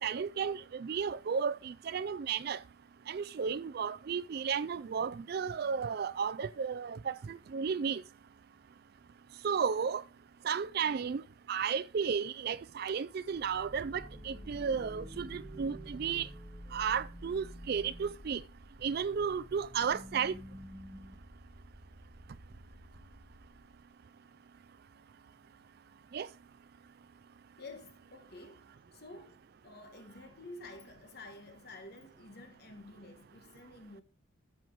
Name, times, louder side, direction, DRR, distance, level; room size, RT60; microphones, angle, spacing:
voice 1, 0.0-2.6 3.1-8.0 9.4-10.0 10.4-11.2 11.5-16.3 16.7-18.4 18.8-20.4 26.1-26.3, right 6 dB, 50° right, 0.3 m, -33 dB
sound 1, 13.2-23.8, equal, 20° right, 1.9 m, -49 dB
voice 2, 27.6-34.0, left 2 dB, 50° left, 1.4 m, -50 dB
13.0 x 4.6 x 3.7 m
head